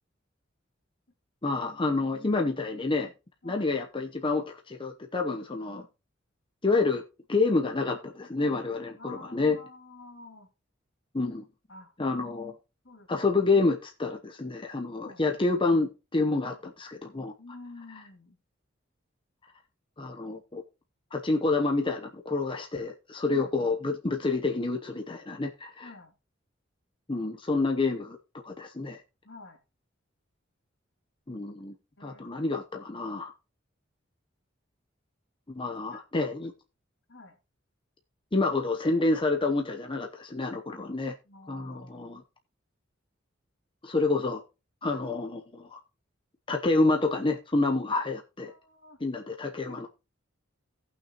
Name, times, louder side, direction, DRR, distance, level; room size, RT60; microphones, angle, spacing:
voice 1, 1.4-3.1 3.4-5.9 6.6-7.0 7.3-9.6 11.1-11.4 12.0-12.6 13.1-17.3 20.0-20.6 21.1-25.9 27.1-28.2 28.4-29.0 31.3-31.7 32.0-33.3 35.5-36.5 38.3-41.1 41.5-42.2 43.8-44.4 44.8-45.8 46.5-48.5 49.0-49.9, left 3 dB, 25° left, 0.8 m, -28 dB
voice 2, 9.0-10.5 11.7-11.9 12.8-13.1 15.0-15.2 16.4-16.6 17.4-18.4 23.2-23.5 25.8-26.1 29.2-29.6 31.3-31.5 32.0-32.2 35.7-36.0 37.1-37.4 41.2-42.1 44.8-45.0 48.5-49.0 49.7-49.9, left 2 dB, 70° left, 2.6 m, -49 dB
17.0 x 6.0 x 2.9 m
head